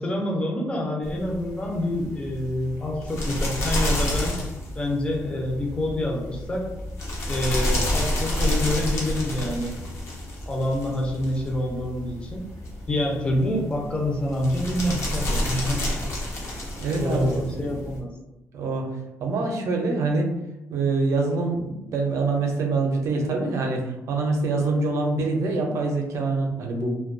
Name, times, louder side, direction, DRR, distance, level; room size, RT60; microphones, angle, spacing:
voice 1, 0.0-4.4 4.8-6.7 7.3-9.8 10.5-12.5 12.9-15.9 17.0-18.1, left 1 dB, 20° left, -1 dB, 0.5 m, -27 dB
sound 1, 1.0-18.0, left 1 dB, 60° left, 0.7 m, -29 dB
voice 2, 16.7-17.8 18.5-18.9 19.2-20.3 20.7-26.9, right 3 dB, 65° right, 2 dB, 0.5 m, -25 dB
2.2 x 2.2 x 2.5 m, 0.93 s
cardioid pair, 130°, 6 cm